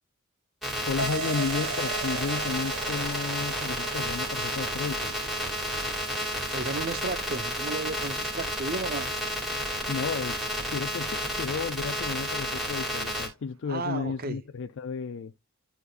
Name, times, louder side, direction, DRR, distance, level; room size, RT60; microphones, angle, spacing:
sound 1, 0.6-13.3, equal, ahead, 2.2 m, -31 dB
voice 1, 0.9-5.1 9.8-10.4 10.7-15.3, left 5 dB, 55° left, 0.4 m, -33 dB
sound 2, 1.0-10.0, right 5 dB, 75° right, 0.6 m, -39 dB
voice 2, 6.5-9.1 13.7-14.4, right 3 dB, 45° right, 0.8 m, -33 dB
11.5 x 4.1 x 2.5 m
head